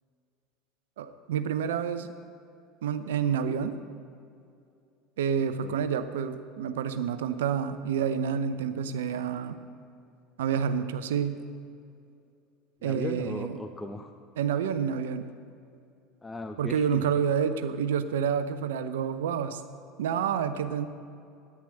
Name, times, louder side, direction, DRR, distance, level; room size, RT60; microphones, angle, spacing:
voice 1, 1.0-2.1 2.8-3.8 5.2-9.6 10.4-11.4 12.8-13.6 14.4-15.3 16.6-19.6 20.0-20.9, right 7 dB, 80° right, 11 dB, 0.7 m, -28 dB
voice 2, 12.8-14.1 16.2-17.0, left 2 dB, 15° left, 7 dB, 0.7 m, -37 dB
10.0 x 10.0 x 7.9 m, 2.5 s
hypercardioid pair, 80°, 0 cm